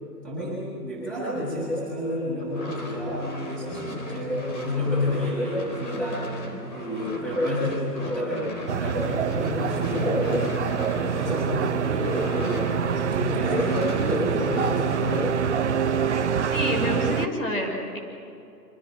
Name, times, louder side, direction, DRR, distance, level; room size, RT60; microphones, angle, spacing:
voice 1, 0.2-6.4 6.7-8.5 8.8-10.5 10.9-12.6 12.9-15.3, left 1 dB, ahead, -8 dB, 7.1 m, -29 dB
sound 1, 2.4-13.1 13.4-15.3, equal, 25° left, 3.6 m, -36 dB
sound 2, 8.7-17.3, right 7 dB, 45° right, 1.0 m, -26 dB
voice 2, 16.5-18.0, left 1 dB, 50° left, 2 dB, 6.5 m, -28 dB
27.5 x 26.0 x 6.3 m, 2.6 s
hypercardioid pair, 170°, 50 cm